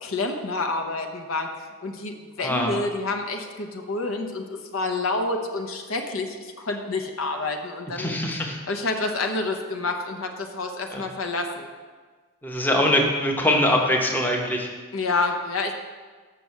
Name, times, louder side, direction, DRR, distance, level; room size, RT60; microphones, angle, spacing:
voice 1, 0.0-4.4 4.7-8.2 8.7-11.7 14.9-15.7, left 3 dB, 80° left, 4 dB, 0.9 m, -28 dB
voice 2, 2.4-2.8 8.0-8.6 10.9-11.0 12.4-14.7, left 1 dB, 10° left, 1 dB, 0.8 m, -23 dB
6.8 x 6.2 x 6.3 m, 1.5 s
head